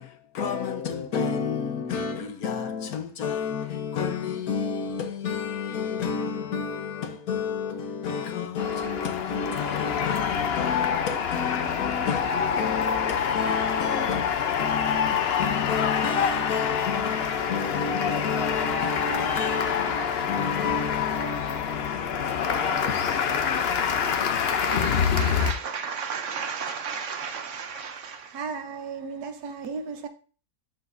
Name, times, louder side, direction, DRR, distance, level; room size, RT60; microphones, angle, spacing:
voice 1, 0.0-23.7, left 6 dB, 70° left, 1.4 m, -31 dB
sound 1, 8.6-25.5, left 7 dB, 55° left, 0.8 m, -26 dB
voice 2, 24.6-28.4, right 6 dB, 60° right, 1.0 m, -34 dB
voice 3, 28.3-30.1, right 5 dB, 90° right, 1.5 m, -34 dB
12.5 x 5.0 x 2.6 m
omnidirectional pair, 1.6 m